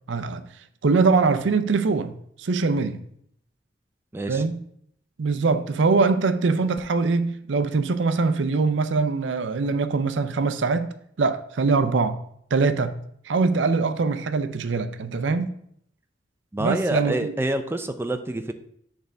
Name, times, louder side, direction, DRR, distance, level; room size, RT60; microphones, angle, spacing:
voice 1, 0.1-0.5 0.8-3.0 4.3-4.6 5.2-10.9 11.2-12.2 12.5-13.0 13.3-15.5 16.6-17.3, right 4 dB, 90° right, 0.5 m, -23 dB
voice 2, 4.1-4.4 16.5-18.5, right 1 dB, 15° right, 0.4 m, -27 dB
6.5 x 3.5 x 5.0 m
head